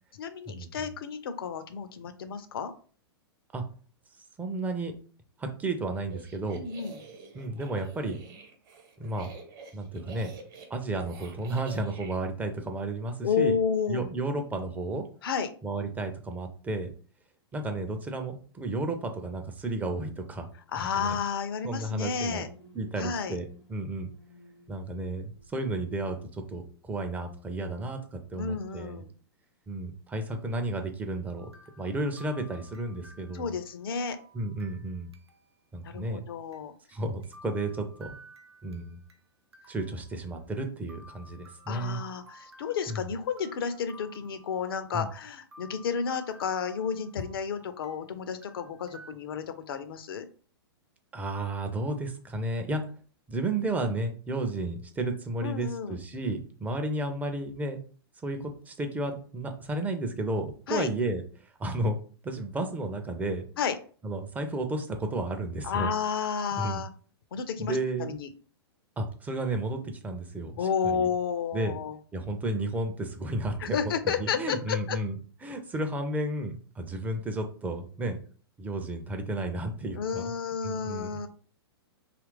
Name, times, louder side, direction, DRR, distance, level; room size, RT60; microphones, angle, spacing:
voice 1, 0.1-2.7 6.5-7.0 13.2-14.1 15.2-15.5 20.7-22.5 23.0-23.4 28.4-29.1 33.3-34.2 35.8-36.7 41.7-50.3 55.4-56.0 60.7-60.9 63.6-63.8 65.6-66.9 67.3-68.3 70.6-72.0 73.6-75.0 79.9-81.3, left 6 dB, 60° left, 10 dB, 0.5 m, -31 dB
voice 2, 4.4-4.9 5.4-6.6 7.3-8.2 9.0-9.3 9.7-10.3 10.7-13.6 13.9-15.0 15.6-16.9 17.5-20.5 21.0-21.2 21.6-22.4 22.7-23.4 23.7-24.1 24.7-29.0 29.7-31.5 31.8-33.5 34.3-35.1 35.7-36.3 36.9-38.2 38.6-39.0 39.7-42.0 42.9-43.0 44.9-45.1 51.1-52.8 53.3-57.8 58.2-61.2 61.6-62.0 62.2-63.4 64.0-65.9 66.6-66.8 67.6-68.2 69.0-70.5 70.8-71.1 71.5-71.8 72.1-73.8 74.2-75.1 75.4-78.2 78.6-80.3 80.6-81.2, right 2 dB, 10° right, 5 dB, 0.4 m, -32 dB
sound 1, 6.0-12.1, right 4 dB, 50° right, 1.0 m, -48 dB
sound 2, 22.3-27.0, right 2 dB, 85° left, 0.8 m, -56 dB
sound 3, 31.4-35.6 35.9-36.0 36.5-36.6 37.2-39.2 39.5-40.6 40.9-45.1 45.5-48.1 48.4-49.1, equal, 85° right, 0.6 m, -54 dB
2.8 x 2.4 x 3.1 m, 0.41 s
figure-of-eight pair, 105°, 13 cm